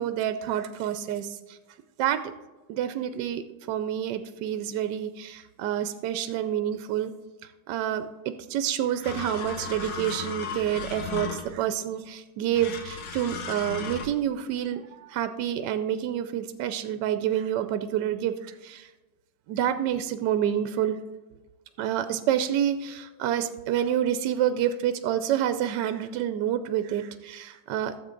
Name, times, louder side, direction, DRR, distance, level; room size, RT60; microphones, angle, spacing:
voice 1, 0.0-1.6 2.0-2.3 2.7-7.1 7.7-18.9 19.5-21.0 21.8-28.0, right 10 dB, 75° right, 10 dB, 1.0 m, -28 dB
sound 1, 9.0-11.7 12.5-14.1, left 5 dB, 75° left, 1.8 m, -35 dB
13.0 x 7.4 x 3.8 m, 1.2 s
omnidirectional pair, 2.2 m